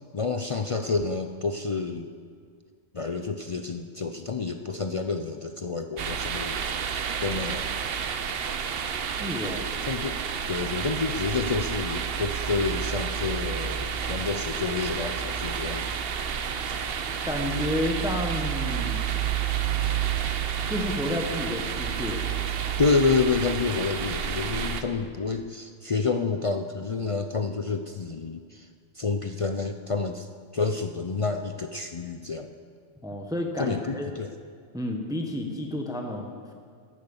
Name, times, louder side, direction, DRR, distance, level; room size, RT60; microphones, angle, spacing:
voice 1, 0.1-2.1 2.9-7.7 9.9-15.9 22.8-28.7 28.9-30.3 30.5-32.5 33.6-34.3, left 4 dB, 50° left, 7 dB, 0.4 m, -29 dB
sound 1, 6.0-24.8, right 8 dB, 55° right, 0.9 m, -30 dB
voice 2, 9.2-9.6 17.2-19.0 20.7-22.2 33.0-34.1 34.7-36.5, left 1 dB, 5° right, 2 dB, 1.1 m, -30 dB
13.5 x 10.5 x 7.1 m, 2.1 s
omnidirectional pair, 1.3 m